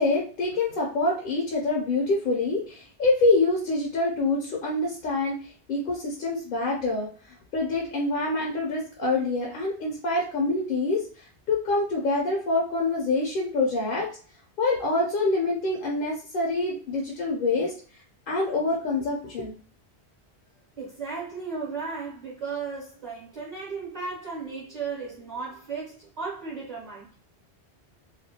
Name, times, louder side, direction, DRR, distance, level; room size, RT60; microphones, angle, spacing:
voice 1, 0.0-14.1 14.6-17.7 18.3-19.6, left 2 dB, 60° left, -2 dB, 0.7 m, -26 dB
voice 2, 20.8-27.2, right 5 dB, 45° right, -4 dB, 0.7 m, -35 dB
2.4 x 2.1 x 2.7 m, 0.42 s
omnidirectional pair, 1.1 m